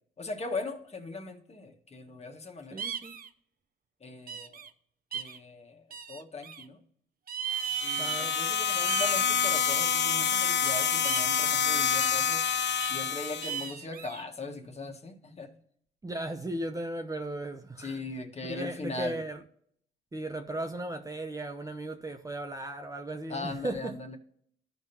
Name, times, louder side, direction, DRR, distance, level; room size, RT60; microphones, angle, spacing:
voice 1, 0.2-2.9 4.0-4.7 5.1-6.8 7.8-12.4 12.9-15.6 17.8-19.2 23.3-24.2, left 3 dB, 30° left, 1.7 m, -39 dB
voice 2, 2.7-3.2 8.0-8.4 16.0-18.0 18.4-19.4 20.1-24.0, right 1 dB, 15° right, 0.8 m, -36 dB
sound 1, 2.8-3.3 4.3-4.7 5.1-5.4 5.9-6.6 7.3-8.5 8.8-10.1 11.0-11.4 12.0-12.3 12.8-13.0 13.4-14.2, right 9 dB, 45° right, 0.7 m, -37 dB
sound 2, 7.5-13.7, left 7 dB, 65° left, 0.9 m, -27 dB
14.5 x 5.2 x 2.9 m
cardioid pair, 90°, 20 cm